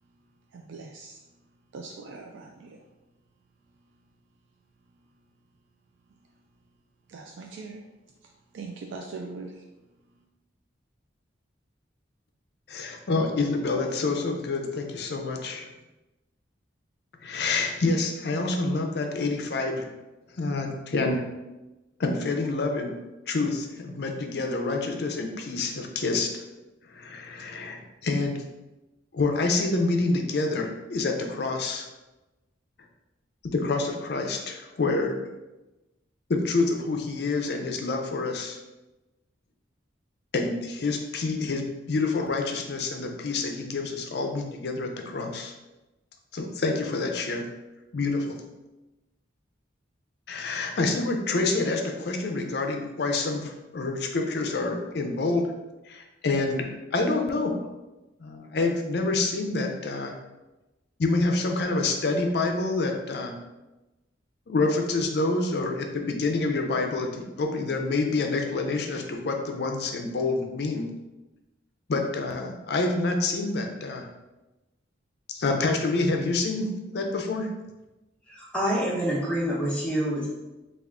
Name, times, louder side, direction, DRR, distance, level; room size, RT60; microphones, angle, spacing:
voice 1, 0.5-1.2 1.7-2.8 7.1-7.8 8.5-9.6, right 4 dB, 80° right, 1 dB, 0.3 m, -41 dB
voice 2, 12.7-15.7 17.2-19.9 20.4-21.2 22.0-22.9 23.3-26.3 26.9-28.4 29.1-31.9 33.4-35.2 36.3-38.6 40.3-45.5 46.3-47.4 47.9-48.4 50.3-55.5 55.9-57.6 58.2-60.1 61.0-63.3 64.5-70.9 71.9-74.1 75.3-77.5, left 3 dB, 55° left, 3 dB, 0.4 m, -27 dB
voice 3, 78.3-80.3, equal, 5° left, -6 dB, 0.8 m, -27 dB
3.5 x 2.4 x 3.5 m, 1.1 s
head